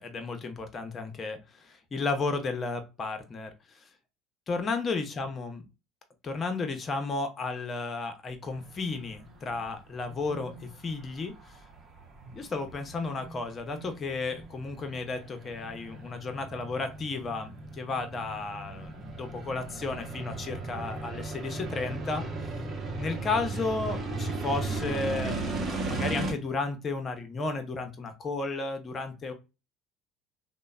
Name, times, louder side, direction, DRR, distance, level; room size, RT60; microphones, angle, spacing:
voice 1, 0.0-3.9 4.5-5.7 6.2-11.6 12.3-22.2 23.0-29.3, left 3 dB, 35° left, 7 dB, 0.7 m, -33 dB
sound 1, 8.5-26.3, right 2 dB, 40° right, 0.9 m, -37 dB
2.9 x 2.1 x 2.3 m, 0.28 s
hypercardioid pair, 75°, 0 cm